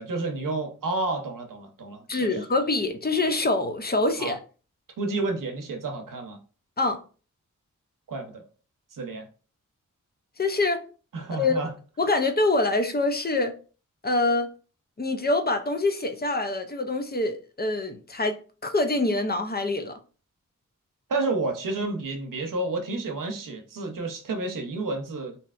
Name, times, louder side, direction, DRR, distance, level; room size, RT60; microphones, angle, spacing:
voice 1, 0.0-2.4 4.2-4.4 5.0-6.4 8.1-8.4 8.9-9.3 11.1-11.7 21.1-25.4, right 3 dB, 80° right, 0.7 m, -30 dB
voice 2, 2.1-4.4 6.8-7.0 10.4-10.8 11.3-11.6 12.0-13.5 14.0-14.5 15.0-20.0, left 2 dB, 30° left, 0.5 m, -25 dB
3.2 x 2.7 x 2.3 m
cardioid pair, 55°, 32 cm